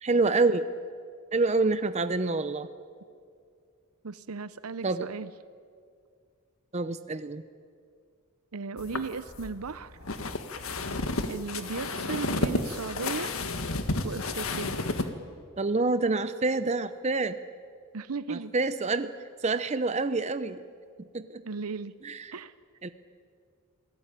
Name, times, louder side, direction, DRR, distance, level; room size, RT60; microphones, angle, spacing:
voice 1, 0.0-0.6 1.3-2.7 4.8-5.1 6.7-7.4 15.6-17.4 18.3-19.1 19.4-20.6 21.0-21.4 22.0-22.3 22.8-22.9, right 3 dB, 30° right, 11 dB, 0.7 m, -27 dB
voice 2, 4.0-5.3 8.5-10.0 11.3-13.3 14.0-14.7 17.9-18.5 21.4-21.9 22.3-22.5, right 4 dB, 85° right, 15 dB, 0.7 m, -36 dB
sound 1, 8.8-15.1, left 2 dB, 70° left, 1.6 m, -32 dB
27.5 x 17.5 x 9.1 m, 2.2 s
head